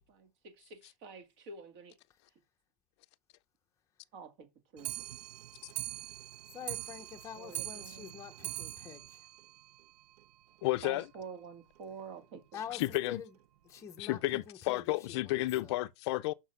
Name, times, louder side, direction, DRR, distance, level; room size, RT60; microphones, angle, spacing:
voice 1, 0.1-2.0 4.1-4.9 7.3-8.2 10.8-12.8, right 5 dB, 40° right, 2.0 m, -48 dB
Clock, 4.8-10.3 10.6-10.7 11.0-11.1 11.4-11.5 11.8-11.9 12.6-12.7 13.4-13.5 14.1-14.2, right 14 dB, 75° right, 0.5 m, -43 dB
voice 2, 6.5-9.2 12.5-12.8 13.1-13.3 13.7-14.2 14.5-14.8 15.2-15.7, left 9 dB, 15° left, 0.8 m, -45 dB
voice 3, 10.6-11.1 12.7-13.2 14.0-16.3, left 18 dB, 45° left, 0.5 m, -32 dB
6.1 x 6.0 x 5.9 m
supercardioid pair, 165°, 20 cm